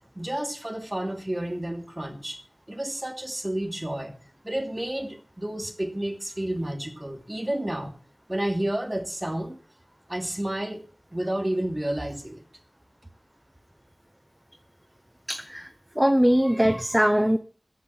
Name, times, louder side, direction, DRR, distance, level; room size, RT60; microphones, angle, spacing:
voice 1, 0.2-2.4 2.7-4.2 4.4-8.0 8.3-9.6 10.1-10.8 11.1-12.4, right 1 dB, 25° right, 6 dB, 2.8 m, -30 dB
voice 2, 15.3-15.7 16.0-17.4, equal, 10° right, 10 dB, 0.9 m, -21 dB
14.0 x 7.8 x 7.8 m, 0.39 s
wide cardioid pair, 55°, 0 cm